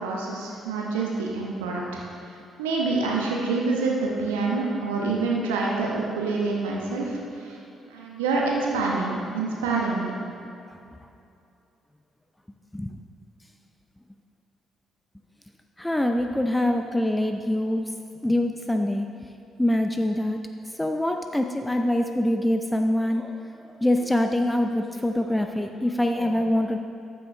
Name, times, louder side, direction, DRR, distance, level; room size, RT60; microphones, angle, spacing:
voice 1, 0.0-2.0 2.6-7.6 7.9-10.1, right 3 dB, 85° right, -3 dB, 1.0 m, -26 dB
voice 2, 15.8-17.9 18.2-19.3 19.6-20.4 20.7-23.5 23.8-26.8, left 1 dB, 10° left, 5 dB, 0.5 m, -24 dB
13.5 x 6.1 x 3.2 m, 2.6 s
hypercardioid pair, 45°, 0 cm